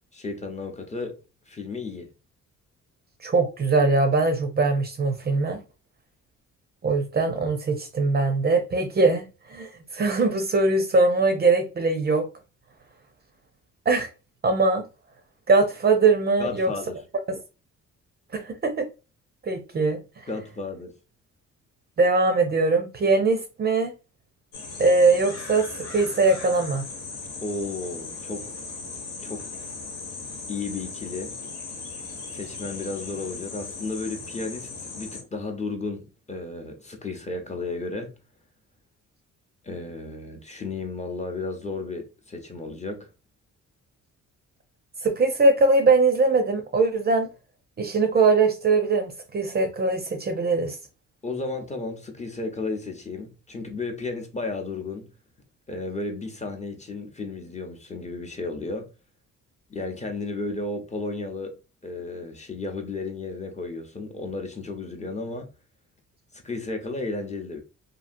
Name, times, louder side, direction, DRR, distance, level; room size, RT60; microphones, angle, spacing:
voice 1, 0.1-1.1 1.5-2.1 16.4-17.0 20.3-20.9 27.4-28.6 29.2-29.5 30.5-31.3 32.3-38.1 39.6-43.1 51.2-55.1 55.7-58.9 59.7-61.5 61.8-65.5 66.3-67.6, left 3 dB, 25° left, 0.7 m, -33 dB
voice 2, 3.2-5.6 6.8-12.3 13.9-14.1 14.4-14.8 15.5-16.7 17.3-17.4 18.3-18.9 19.4-20.2 22.0-23.9 24.8-26.8 45.0-47.3 47.8-50.8, right 3 dB, 35° right, 0.5 m, -21 dB
sound 1, 24.5-35.2, left 4 dB, 65° left, 1.1 m, -38 dB
2.7 x 2.7 x 2.5 m
cardioid pair, 90°, 30 cm